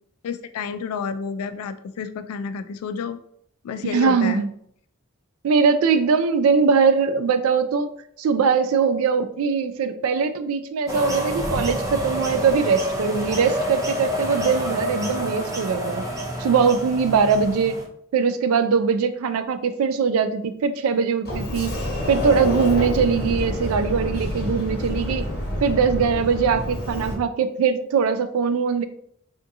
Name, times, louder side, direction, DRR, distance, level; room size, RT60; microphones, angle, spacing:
voice 1, 0.2-3.2 3.6-4.5, left 6 dB, 85° left, 11 dB, 0.3 m, -30 dB
voice 2, 3.9-4.5 5.4-7.9 8.2-16.0 16.4-17.8 18.1-21.8 22.1-25.3 25.6-28.8, right 5 dB, 75° right, 11 dB, 0.3 m, -21 dB
sound 1, 10.9-17.8, equal, 15° right, 0.5 m, -28 dB
Sliding door, 21.3-27.1, left 1 dB, 50° left, 1.0 m, -28 dB
3.5 x 2.7 x 2.5 m, 0.67 s
head